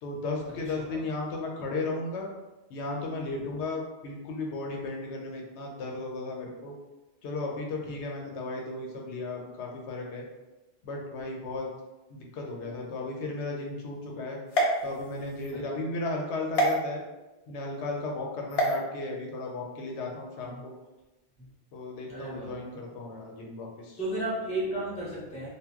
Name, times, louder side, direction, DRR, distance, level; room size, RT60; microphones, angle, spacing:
voice 1, 0.0-2.3 2.7-6.7 7.2-10.2 10.8-11.7 12.1-14.4 14.8-17.0 17.5-20.7 21.7-24.0, left 2 dB, 85° left, 0 dB, 0.9 m, -35 dB
sound 1, 14.5-15.5 16.5-16.7 18.5-18.8, equal, 55° left, 0.4 m, -27 dB
voice 2, 22.1-22.5 24.0-25.5, right 1 dB, 10° left, -6 dB, 0.5 m, -34 dB
2.2 x 2.0 x 3.4 m, 1.1 s
omnidirectional pair, 1.1 m